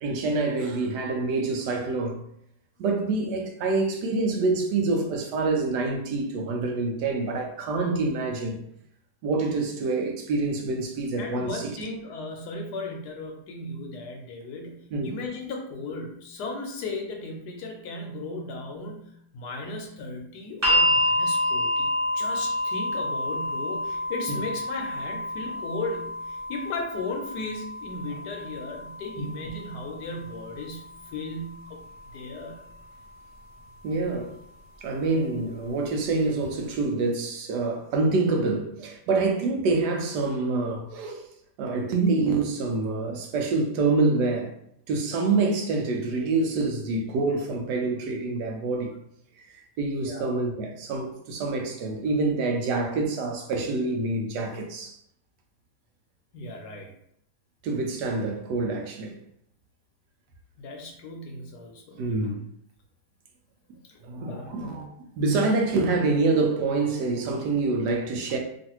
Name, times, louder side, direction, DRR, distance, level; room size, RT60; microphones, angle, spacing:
voice 1, 0.0-2.2 2.8-8.6 9.2-11.8 14.9-15.1 24.3-24.4 29.2-29.3 33.8-34.3 34.8-41.2 41.6-44.5 44.9-48.9 49.4-55.0 57.6-59.1 62.0-62.4 64.0-64.9 65.2-68.4, right 3 dB, 75° right, 1.1 m, -26 dB
voice 2, 11.2-31.8 32.1-32.6 50.0-50.3 56.3-56.9 60.6-62.3 63.9-64.0 64.3-64.5, left 2 dB, 75° left, 1.1 m, -36 dB
sound 1, 20.6-32.7 33.8-33.9, left 1 dB, 25° right, 0.3 m, -29 dB
3.1 x 2.4 x 2.9 m
omnidirectional pair, 1.9 m